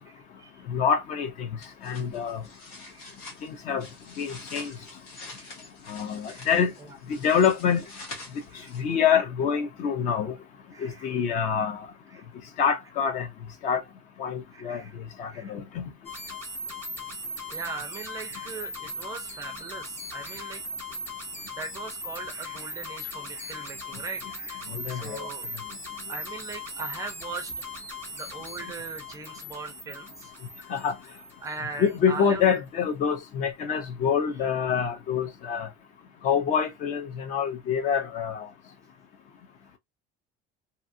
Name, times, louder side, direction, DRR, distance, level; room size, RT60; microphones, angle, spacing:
voice 1, 0.1-0.6 2.7-3.1 3.5-3.6 5.2-5.5 6.3-6.5 6.8-6.9 8.5-8.7 10.7-11.1 12.1-12.3 14.5-14.9 15.3-15.5 17.5-20.6 21.6-25.6 26.1-27.5 28.1-30.3 31.4-32.6, right 4 dB, 15° right, 0.5 m, -40 dB
voice 2, 0.7-1.5 1.8-2.4 3.4-3.9 4.2-4.7 5.9-6.7 7.1-7.8 8.7-10.3 10.8-11.9 12.6-13.3 13.6-13.8 14.2-14.8 15.2-15.9 24.7-25.3 30.7-30.9 31.8-35.7 36.2-38.5, left 7 dB, 40° left, 0.6 m, -26 dB
sound 1, 1.6-9.0, left 2 dB, 55° left, 1.4 m, -46 dB
sound 2, 16.0-31.9, left 1 dB, 10° left, 1.1 m, -39 dB
2.7 x 2.3 x 2.6 m
cardioid pair, 170°, 19 cm